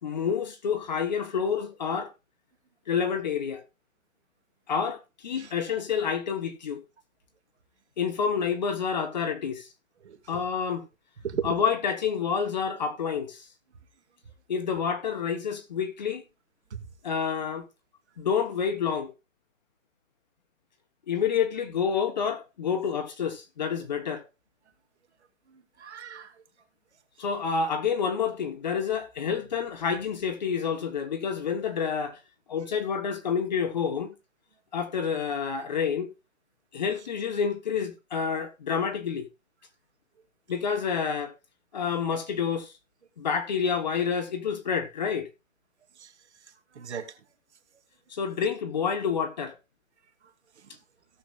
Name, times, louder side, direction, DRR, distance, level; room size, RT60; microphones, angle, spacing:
voice 1, 0.0-2.1 2.9-3.6 4.7-6.8 8.0-9.7 10.3-10.8 11.4-13.5 14.5-16.2 17.0-17.7 18.2-19.1 21.1-24.2 27.2-32.2 32.5-34.1 34.7-36.1 36.7-39.3 40.5-41.3 41.7-42.7 43.2-45.3 48.1-49.5, left 6 dB, 35° left, 1.2 m, -28 dB
voice 2, 10.0-10.4 11.2-11.6 16.7-16.9 25.5-26.4 46.0-46.1 46.4-47.2 50.6-50.8, right 7 dB, 55° right, 2.2 m, -38 dB
17.5 x 7.0 x 2.5 m
hypercardioid pair, 175°, 40 cm